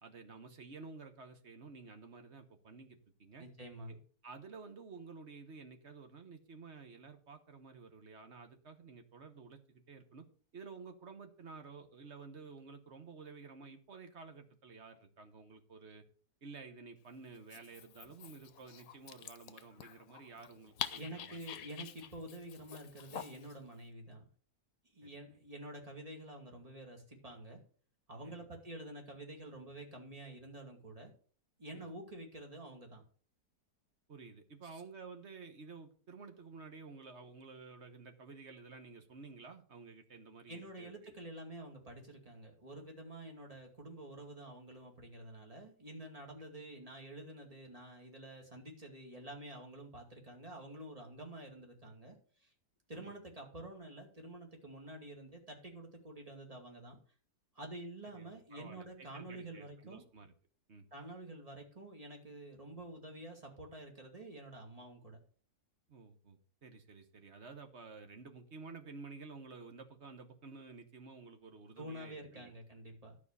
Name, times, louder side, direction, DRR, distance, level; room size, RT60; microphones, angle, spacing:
voice 1, 0.0-3.4 3.9-4.0 4.2-10.3 10.5-16.0 16.4-21.4 25.0-25.1 28.2-28.5 31.7-31.9 34.1-40.9 52.9-53.1 58.1-60.3 60.7-60.8 65.9-72.5, right 4 dB, 45° right, 6 dB, 1.4 m, -52 dB
voice 2, 3.4-4.0 20.9-24.3 24.9-27.6 28.1-31.1 31.6-33.0 34.7-34.8 40.5-52.5 52.9-57.0 57.5-60.0 60.9-65.2 71.8-73.2, right 1 dB, 25° right, 2 dB, 2.3 m, -49 dB
Dog, 17.3-23.6, left 9 dB, 70° left, 1.1 m, -47 dB
12.0 x 4.9 x 6.7 m, 0.42 s
omnidirectional pair, 1.7 m